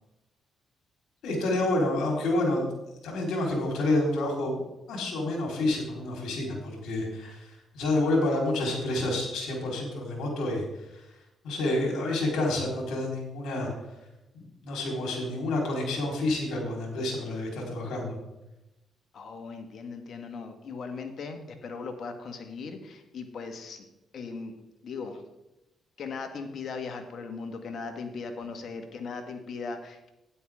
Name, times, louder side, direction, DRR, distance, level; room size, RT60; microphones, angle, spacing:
voice 1, 1.2-2.7 3.0-4.6 4.9-10.6 10.9-11.0 11.4-13.7 14.3-18.2, left 2 dB, 80° left, -1 dB, 4.4 m, -28 dB
voice 2, 19.1-23.9 24.1-25.2 26.0-30.1, left 4 dB, 60° left, 6 dB, 1.8 m, -38 dB
12.0 x 10.5 x 3.7 m, 0.95 s
supercardioid pair, 70°, 0 cm